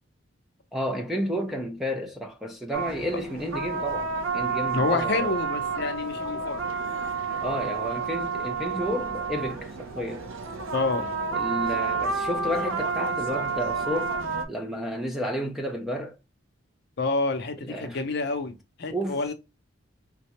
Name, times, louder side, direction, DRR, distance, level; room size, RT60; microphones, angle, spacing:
voice 1, 0.7-5.3 7.4-10.3 11.3-14.2 14.5-16.2 17.6-18.0 18.9-19.2, equal, ahead, 0.4 m, -31 dB
sound 1, 2.7-14.4, right 4 dB, 85° right, 0.6 m, -30 dB
voice 2, 4.7-6.6 10.7-11.2 17.0-19.3, left 3 dB, 55° left, 0.6 m, -28 dB
3.6 x 2.1 x 2.9 m
head